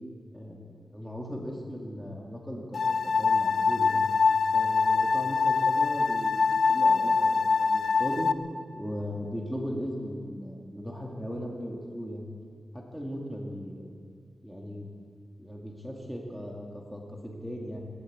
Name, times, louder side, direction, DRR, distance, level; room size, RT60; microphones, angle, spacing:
voice 1, 0.3-4.1 4.5-8.3 8.7-12.3 12.7-13.9 14.4-14.9 15.4-17.8, equal, ahead, -1 dB, 2.1 m, -38 dB
sound 1, 2.7-8.3, left 4 dB, 65° left, 0.7 m, -24 dB
18.0 x 17.0 x 8.6 m, 2.1 s
wide cardioid pair, 165°, 0 cm